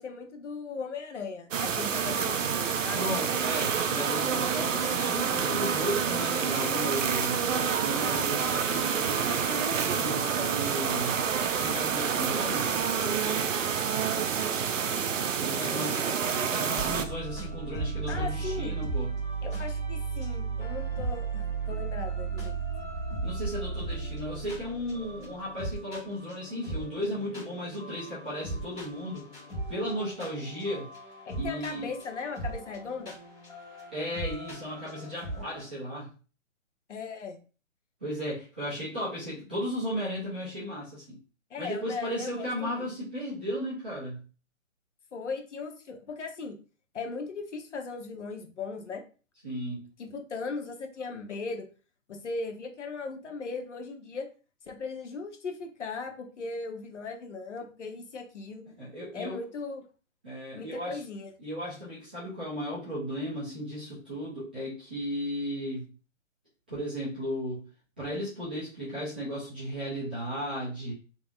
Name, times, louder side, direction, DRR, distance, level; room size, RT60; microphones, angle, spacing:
voice 1, 0.0-3.0 15.2-16.2 18.1-18.7 19.4-22.5 31.3-33.1 36.9-37.4 41.5-42.8 45.1-46.6 46.9-49.0 50.0-51.7 52.1-54.3 54.7-58.6 59.1-59.8 60.5-61.3, left 4 dB, 60° left, 3 dB, 1.0 m, -38 dB
sound 1, 1.5-17.0, right 7 dB, 70° right, 0.6 m, -28 dB
voice 2, 2.9-7.4 7.8-11.2 11.5-13.5 15.4-19.1 23.2-29.3 29.7-30.9 31.4-31.9 33.9-36.1 38.0-41.2 41.6-44.2 49.4-49.9 58.8-59.4 60.2-61.0 61.4-65.9 66.7-67.7 68.0-70.9, equal, 10° right, -12 dB, 0.4 m, -35 dB
sound 2, 16.8-35.7, right 4 dB, 10° left, 1.7 m, -36 dB
3.6 x 2.9 x 2.4 m, 0.37 s
figure-of-eight pair, 140°, 39 cm